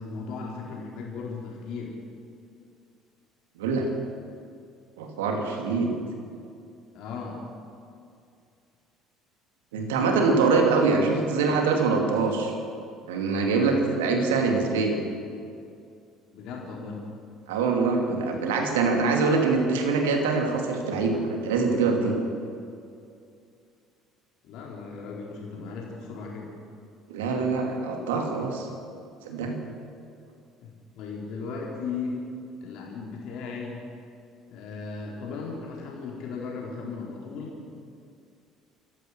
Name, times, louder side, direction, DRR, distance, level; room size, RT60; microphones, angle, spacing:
voice 1, 0.0-2.0 6.9-7.4 16.3-17.0 18.3-18.4 24.4-26.5 30.6-32.2 32.6-33.8 34.5-37.6, left 4 dB, 60° left, -2 dB, 3.8 m, -36 dB
voice 2, 5.0-5.9 9.7-12.5 13.1-15.0 17.5-22.1 27.1-28.7 29.2-29.5, right 4 dB, 70° right, 2 dB, 2.7 m, -24 dB
27.0 x 15.0 x 6.4 m, 2.4 s
figure-of-eight pair, 55°, 0 cm